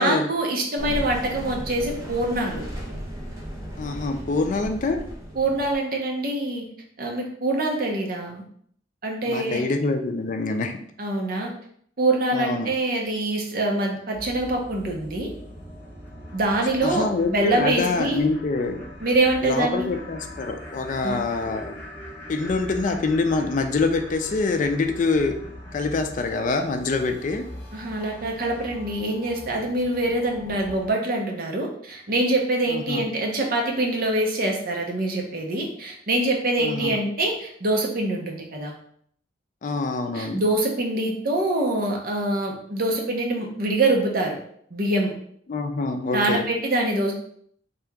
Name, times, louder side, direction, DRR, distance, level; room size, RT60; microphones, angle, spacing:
voice 1, 0.0-2.6 5.4-6.6 7.0-8.4 9.0-9.6 11.0-11.5 12.0-15.3 16.3-18.2 19.0-19.9 21.0-21.2 27.7-38.8 40.1-44.4 44.7-45.1 46.1-47.1, right 2 dB, 50° right, 0 dB, 0.8 m, -24 dB
sound 1, 0.8-5.8, equal, 15° right, 1.0 m, -35 dB
voice 2, 3.8-5.0 9.3-10.8 12.3-12.7 16.8-18.9 19.4-21.7 22.3-25.4 25.7-27.4 32.7-33.0 36.6-37.0 39.6-40.4 45.5-46.4, left 3 dB, 45° left, 6 dB, 0.4 m, -25 dB
sound 2, 14.1-30.9, equal, 10° left, 1.1 m, -41 dB
3.4 x 2.8 x 3.5 m, 0.64 s
head